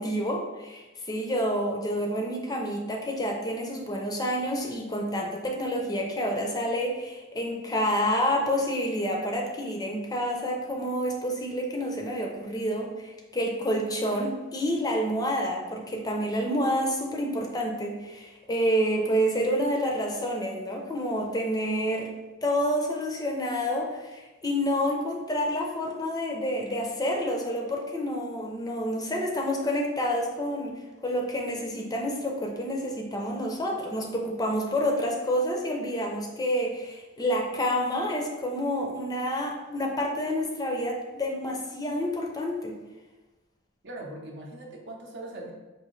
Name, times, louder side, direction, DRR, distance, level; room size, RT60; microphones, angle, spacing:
voice 1, 0.0-22.1 22.4-30.7 31.0-42.7, equal, 20° left, 0 dB, 0.5 m, -28 dB
voice 2, 43.8-45.5, right 1 dB, 60° right, 1 dB, 0.6 m, -40 dB
4.8 x 2.5 x 3.0 m, 1.1 s
head